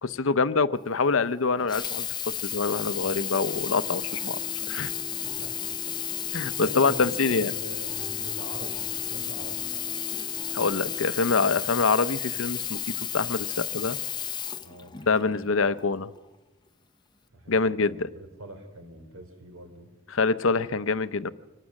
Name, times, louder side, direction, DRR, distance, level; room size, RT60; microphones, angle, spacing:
voice 1, 0.0-4.4 4.7-4.9 6.3-7.5 10.5-12.8 13.1-14.0 15.1-16.1 17.5-18.1 20.1-21.3, left 4 dB, 70° left, 14 dB, 0.7 m, -25 dB
Sink (filling or washing), 1.6-15.4 16.1-16.2, left 10 dB, 20° left, 0.6 m, -33 dB
sound 1, 3.1-11.1, right 1 dB, 5° right, 1.7 m, -44 dB
voice 2, 5.2-5.6 6.6-9.6 14.6-15.4 17.3-19.9, right 1 dB, 75° right, 6 dB, 3.8 m, -44 dB
25.0 x 18.5 x 6.4 m, 1.1 s
head